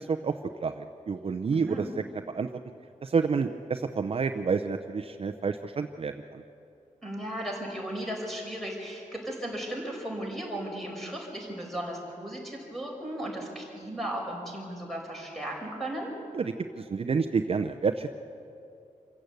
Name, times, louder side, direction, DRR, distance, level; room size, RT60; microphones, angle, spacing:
voice 1, 0.0-1.9 2.3-2.5 3.0-6.4 16.3-18.1, right 5 dB, 45° right, 6 dB, 0.7 m, -29 dB
voice 2, 1.5-1.9 7.0-16.1, right 1 dB, ahead, -1 dB, 5.0 m, -36 dB
26.5 x 15.5 x 8.2 m, 2.6 s
wide cardioid pair, 170°, 14 cm